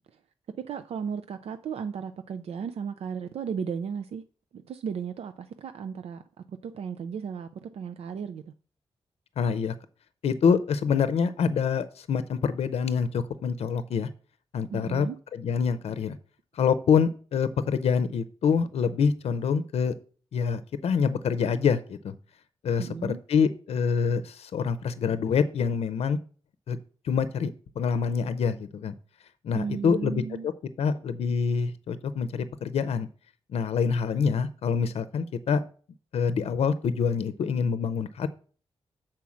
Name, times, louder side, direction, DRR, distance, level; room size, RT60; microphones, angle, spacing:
voice 1, 0.6-4.2 4.5-6.2 6.5-8.5 14.7-15.2 22.8-23.2 29.5-30.5, right 6 dB, 80° right, 0.5 m, -35 dB
voice 2, 9.4-9.7 10.2-14.1 14.5-15.1 15.3-16.2 16.5-19.9 20.3-22.1 22.6-26.2 26.7-26.8 27.0-27.5 27.8-28.9 29.4-30.5 30.8-33.1 33.5-35.6 36.1-38.3, left 6 dB, 80° left, 0.6 m, -26 dB
7.2 x 4.5 x 6.2 m
wide cardioid pair, 135°, 10 cm